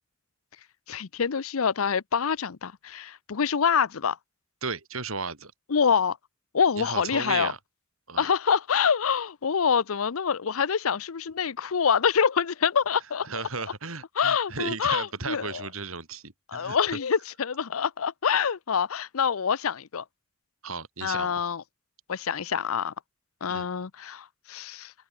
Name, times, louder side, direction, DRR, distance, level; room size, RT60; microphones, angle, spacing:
voice 1, 0.9-4.2 5.7-6.2 6.5-7.5 8.2-13.4 14.2-15.7 16.5-20.0 21.0-21.6 22.1-22.9 23.4-24.9, left 6 dB, 80° left, 0.6 m, -26 dB
voice 2, 4.6-5.5 6.8-7.6 8.1-8.3 13.2-16.8 20.6-21.4 23.5-23.7, right 4 dB, 80° right, 5.7 m, -35 dB
open air
head